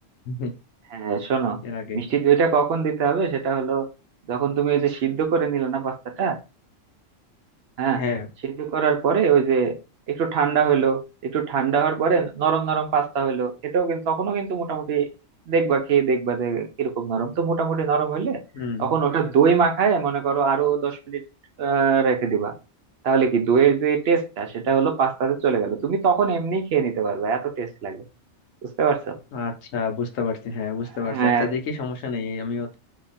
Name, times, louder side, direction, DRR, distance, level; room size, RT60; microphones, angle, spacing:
voice 1, 0.9-1.6 1.9-3.9 4.3-6.4 7.8-8.0 8.4-9.8 10.1-15.1 15.5-18.4 18.8-21.2 21.6-22.5 23.0-28.0 28.6-29.2 31.0-31.5, right 6 dB, 60° right, 0.8 m, -22 dB
voice 2, 1.6-2.0 7.9-8.3 18.5-18.9 29.3-32.8, left 4 dB, 90° left, 1.1 m, -29 dB
2.8 x 2.3 x 4.0 m
omnidirectional pair, 1.3 m